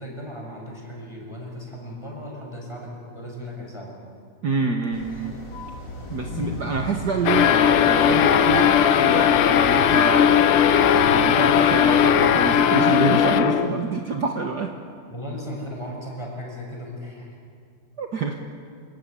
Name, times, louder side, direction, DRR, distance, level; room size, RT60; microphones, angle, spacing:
voice 1, 0.0-3.9 15.1-17.3, equal, 10° left, -1 dB, 6.6 m, -36 dB
voice 2, 4.4-5.4 6.1-10.4 10.9-14.7 18.0-18.3, right 4 dB, 50° right, 3 dB, 1.7 m, -27 dB
sound 1, 4.9-12.0, left 2 dB, 50° left, 3.5 m, -36 dB
sound 2, 7.3-13.9, left 9 dB, 80° left, 1.9 m, -18 dB
27.5 x 17.0 x 9.8 m, 2.3 s
omnidirectional pair, 2.4 m